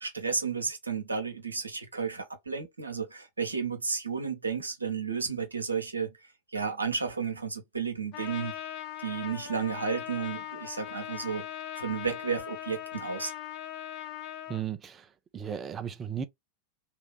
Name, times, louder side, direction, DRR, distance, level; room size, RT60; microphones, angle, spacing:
voice 1, 0.0-6.1 6.5-8.5 9.0-11.5 11.8-13.3, right 5 dB, 80° right, 1.0 m, -32 dB
Trumpet, 8.1-14.6, left 12 dB, 40° left, 1.1 m, -40 dB
voice 2, 14.5-15.1 15.3-16.2, right 8 dB, 25° right, 0.6 m, -35 dB
3.2 x 2.8 x 3.2 m
figure-of-eight pair, 90°, 0 cm